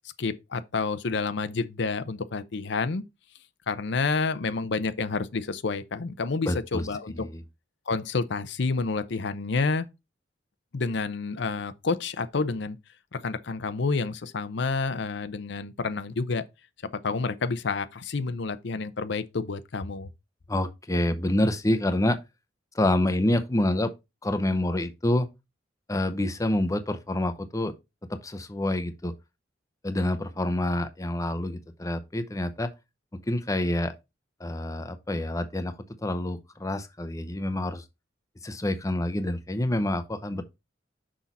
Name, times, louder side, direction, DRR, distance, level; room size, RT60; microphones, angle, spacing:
voice 1, 0.2-3.0 3.7-7.1 7.9-9.9 10.7-12.8 13.1-16.4 16.9-20.1, left 4 dB, 65° left, 0.7 m, -29 dB
voice 2, 6.5-7.4 20.5-22.2 22.7-23.9 24.2-25.3 25.9-27.7 28.1-29.1 29.8-32.7 33.1-33.9 34.4-35.8 36.0-37.8 38.4-40.4, left 1 dB, 20° left, 0.7 m, -27 dB
6.2 x 5.6 x 4.1 m
head